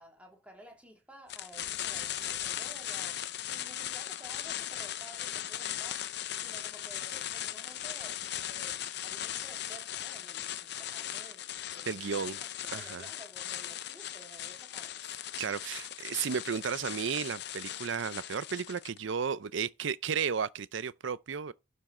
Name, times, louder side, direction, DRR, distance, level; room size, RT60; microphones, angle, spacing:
voice 1, 0.0-6.0 6.4-11.4 11.7-12.3 12.6-15.0, right 1 dB, 5° right, 2.5 m, -53 dB
sound 1, 1.3-19.0, left 11 dB, 55° left, 0.6 m, -38 dB
voice 2, 11.9-12.4 12.7-13.1 15.4-21.5, right 6 dB, 65° right, 0.5 m, -33 dB
12.0 x 6.3 x 4.3 m
head